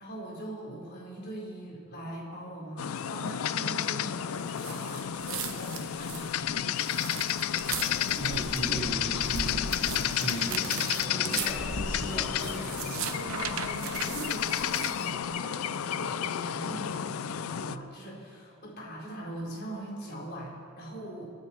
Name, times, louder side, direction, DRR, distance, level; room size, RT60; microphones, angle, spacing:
voice 1, 0.0-6.7 13.1-21.3, right 1 dB, 50° left, -3 dB, 4.2 m, -41 dB
sound 1, 2.8-17.8, left 9 dB, 80° left, 0.4 m, -31 dB
sound 2, 4.5-15.2, right 5 dB, 65° right, 1.3 m, -39 dB
voice 2, 7.6-13.2, equal, 20° left, -8 dB, 3.8 m, -37 dB
sound 3, 9.6-11.1 12.6-14.9, right 9 dB, 80° right, 0.7 m, -39 dB
27.0 x 10.0 x 4.4 m, 2.4 s
head